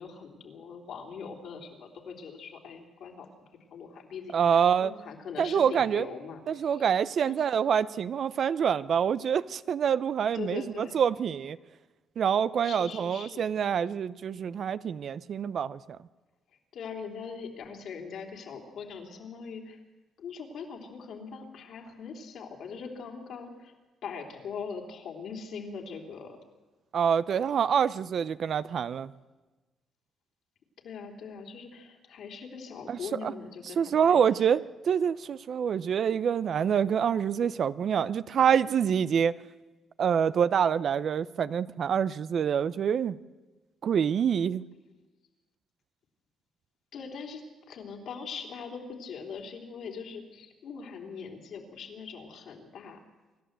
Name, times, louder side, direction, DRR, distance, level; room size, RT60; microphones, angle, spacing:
voice 1, 0.0-3.3 3.7-6.8 7.2-7.4 10.3-11.0 12.6-13.4 16.7-19.8 20.2-23.7 24.0-26.4 30.8-34.3 46.9-47.4 47.7-53.0, left 5 dB, 70° left, 2 dB, 3.5 m, -41 dB
voice 2, 4.3-4.9 5.4-6.1 6.5-11.6 12.2-15.8 26.9-29.1 32.9-33.3 33.8-39.3 40.0-43.2 43.8-44.6, right 8 dB, 60° right, 15 dB, 0.6 m, -26 dB
26.5 x 12.0 x 8.1 m, 1.2 s
cardioid pair, 90°, 0 cm